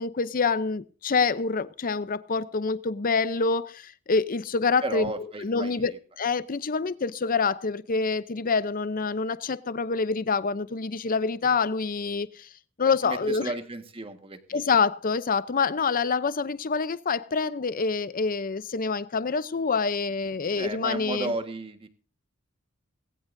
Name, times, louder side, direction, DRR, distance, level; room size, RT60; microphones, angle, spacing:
voice 1, 0.0-5.1 5.4-12.5 12.8-13.5 14.5-21.3, left 4 dB, 40° left, 0.6 m, -26 dB
voice 2, 4.8-6.0 13.0-14.7 20.6-21.9, right 2 dB, 25° right, 1.6 m, -34 dB
19.0 x 16.5 x 2.7 m
head